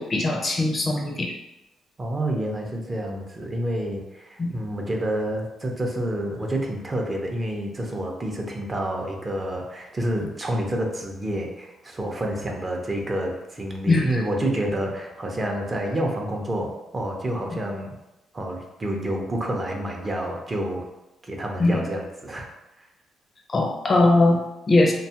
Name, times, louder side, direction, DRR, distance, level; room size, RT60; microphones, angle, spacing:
voice 1, 0.0-1.3 4.4-4.5 13.9-14.2 21.6-21.8 23.5-24.9, left 2 dB, 35° left, 1 dB, 0.5 m, -20 dB
voice 2, 2.0-17.9 18.3-20.9 21.3-22.5, right 1 dB, 25° right, 1 dB, 0.5 m, -28 dB
2.7 x 2.3 x 2.8 m, 0.96 s
cardioid pair, 90°, 0 cm